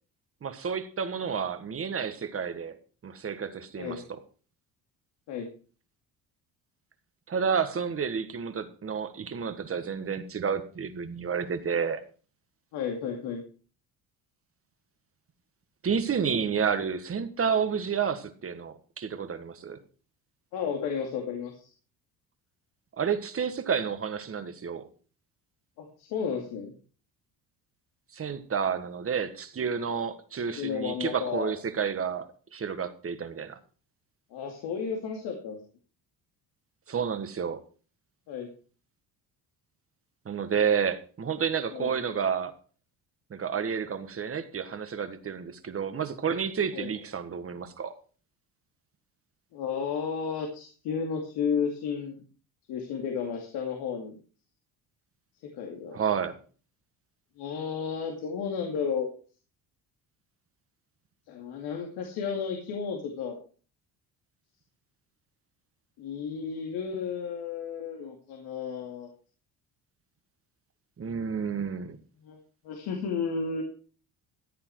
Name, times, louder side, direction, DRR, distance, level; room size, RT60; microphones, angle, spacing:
voice 1, 0.4-2.8 3.0-4.2 7.3-12.0 15.8-19.8 23.0-24.9 28.1-33.6 36.9-37.6 40.2-42.5 43.3-47.9 55.9-56.4 71.0-72.0, right 6 dB, 35° right, 1.6 m, -30 dB
voice 2, 12.7-13.4 20.5-21.7 25.8-26.7 30.6-31.5 34.3-35.6 38.3-38.5 41.7-41.9 46.7-46.9 49.5-52.2 52.7-54.2 55.4-56.0 57.4-59.1 61.3-63.4 66.0-69.1 71.0-71.3 71.6-71.7 72.2-72.4 72.6-73.6, left 6 dB, 85° left, 2.5 m, -33 dB
14.5 x 8.7 x 4.7 m
cardioid pair, 100°, 38 cm